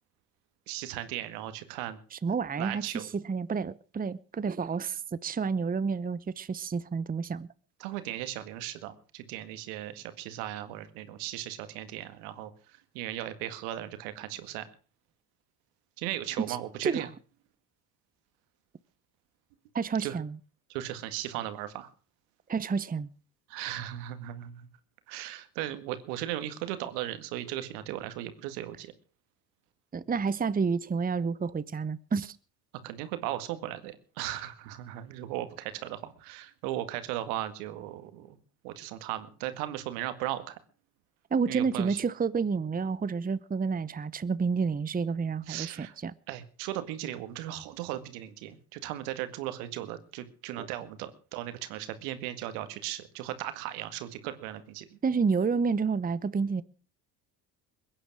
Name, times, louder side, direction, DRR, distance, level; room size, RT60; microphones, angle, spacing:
voice 1, 0.7-2.0 2.6-3.0 7.8-12.5 12.9-14.6 16.0-17.1 20.0-20.2 20.7-21.9 23.5-24.7 25.1-28.9 32.8-38.4 38.6-40.6 41.5-42.0 45.5-46.0 46.3-55.0, right 13 dB, 80° right, 2.0 m, -37 dB
voice 2, 2.1-7.5 16.4-16.6 16.8-17.1 19.7-20.4 22.5-23.1 29.9-32.4 41.3-46.1 50.5-50.7 55.0-56.6, right 5 dB, 20° right, 0.8 m, -30 dB
21.5 x 9.9 x 6.2 m
hypercardioid pair, 60°, 46 cm